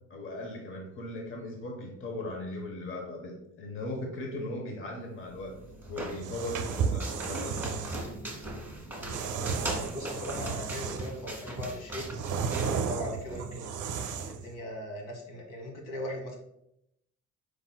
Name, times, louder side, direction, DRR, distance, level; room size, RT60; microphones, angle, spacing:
voice 1, 0.1-5.5 5.9-7.7, left 1 dB, 40° left, 1 dB, 0.9 m, -38 dB
sound 1, 5.2-13.4, right 1 dB, 5° right, 1.2 m, -40 dB
sound 2, 6.2-8.0 9.1-11.2 11.6-14.5, right 6 dB, 70° right, 0.5 m, -33 dB
voice 2, 9.0-12.1 12.6-13.7 14.3-16.4, left 1 dB, 80° left, -1 dB, 1.4 m, -39 dB
4.8 x 3.9 x 2.2 m, 0.80 s
cardioid pair, 95°, 32 cm